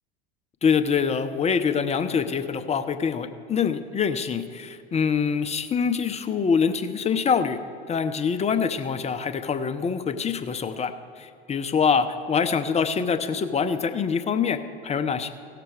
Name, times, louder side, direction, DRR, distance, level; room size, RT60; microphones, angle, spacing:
voice 1, 0.6-7.6 7.9-15.3, left 6 dB, 20° left, 9 dB, 0.6 m, -25 dB
16.5 x 6.8 x 4.7 m, 2.5 s
hypercardioid pair, 85°, 31 cm